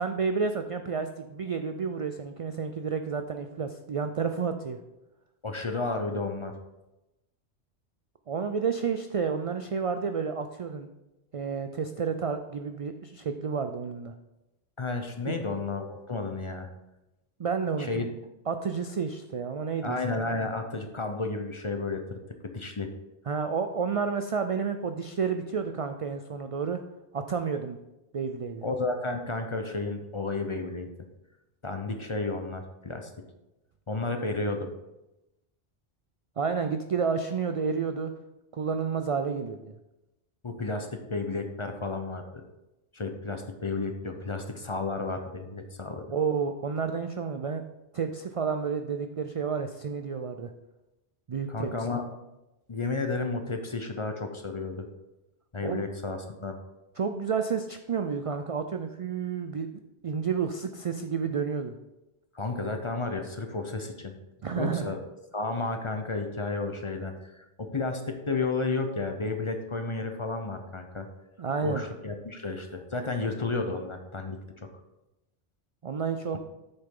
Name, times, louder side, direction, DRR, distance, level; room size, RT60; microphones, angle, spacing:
voice 1, 0.0-4.8 8.3-10.9 11.3-14.1 15.3-15.6 17.4-18.0 18.5-20.0 23.3-26.8 27.1-27.8 28.1-28.6 36.4-38.1 38.5-39.7 46.1-47.6 47.9-50.5 51.3-51.7 55.6-55.8 57.0-61.7 64.4-64.9 71.4-71.8 75.8-76.4, right 6 dB, 65° right, 7 dB, 0.3 m, -30 dB
voice 2, 5.4-6.5 14.8-16.7 17.8-18.1 19.8-22.9 28.6-30.9 31.6-33.1 33.9-34.7 40.4-42.4 42.9-46.1 51.5-52.0 52.7-54.9 55.5-56.6 62.3-64.1 64.5-65.0 65.3-71.1 71.6-74.4, left 3 dB, 30° left, 5 dB, 0.7 m, -32 dB
8.2 x 6.6 x 3.7 m, 0.96 s
omnidirectional pair, 1.1 m